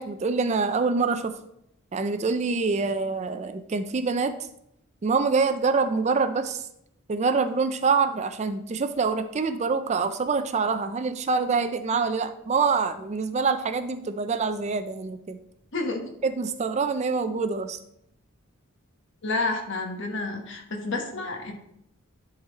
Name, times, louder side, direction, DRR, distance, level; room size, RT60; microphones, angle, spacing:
voice 1, 0.0-1.3 1.9-4.3 5.0-6.6 7.1-15.4 16.2-17.8, right 4 dB, 30° right, 10 dB, 0.4 m, -25 dB
voice 2, 15.7-16.1 19.2-21.5, left 3 dB, 55° left, 3 dB, 1.3 m, -30 dB
10.5 x 4.0 x 4.0 m, 0.78 s
head